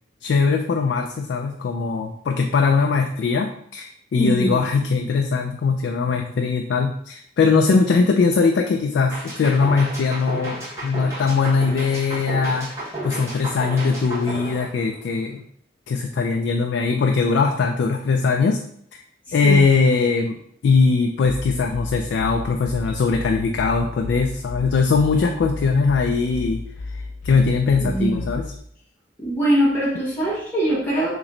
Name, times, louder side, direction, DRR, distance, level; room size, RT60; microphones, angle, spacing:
voice 1, 0.2-15.4 15.9-18.6 19.3-26.6 27.2-28.5, left 4 dB, 85° left, 3 dB, 0.3 m, -20 dB
voice 2, 4.2-4.6 19.3-19.7 27.8-28.3 29.2-31.2, right 1 dB, 10° left, -9 dB, 1.0 m, -22 dB
sound 1, 9.1-15.3, right 1 dB, 15° right, 1.2 m, -32 dB
sound 2, 21.2-28.6, left 3 dB, 45° left, 1.4 m, -33 dB
3.0 x 3.0 x 3.8 m, 0.67 s
head